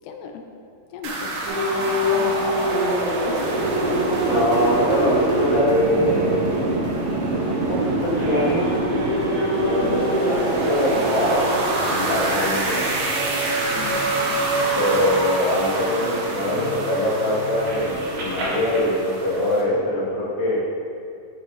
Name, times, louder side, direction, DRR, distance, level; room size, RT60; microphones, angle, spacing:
voice 1, 0.0-0.5 0.9-1.5 2.1-2.6 3.2-3.7 9.8-10.5 13.7-14.5, left 5 dB, 90° left, 3 dB, 2.7 m, -37 dB
sound 1, 1.0-19.6, right 2 dB, 85° right, 1.3 m, -25 dB
sound 2, 1.5-18.8, equal, 60° right, 2.5 m, -28 dB
voice 2, 4.2-6.5 7.3-8.6 9.6-10.0 10.3-12.8 14.7-20.6, left 1 dB, 45° left, -8 dB, 3.0 m, -23 dB
10.5 x 7.5 x 3.2 m, 2.4 s
omnidirectional pair, 4.5 m